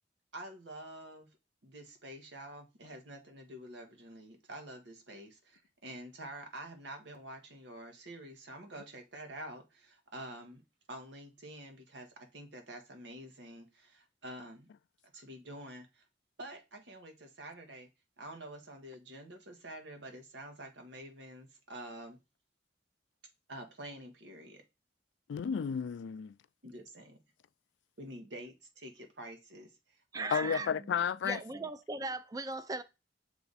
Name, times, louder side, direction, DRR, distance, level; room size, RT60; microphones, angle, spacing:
voice 1, 0.3-1.3 1.6-10.6 10.9-14.7 15.1-16.0 16.4-17.9 18.2-22.2 23.5-24.6 26.6-27.2 28.0-31.0 31.5-31.7, right 1 dB, 90° right, 1.4 m, -48 dB
voice 2, 25.3-26.3 30.3-31.4, left 7 dB, 85° left, 0.3 m, -32 dB
voice 3, 30.1-30.7 31.2-32.8, right 3 dB, 20° right, 0.4 m, -38 dB
6.9 x 3.4 x 4.1 m
head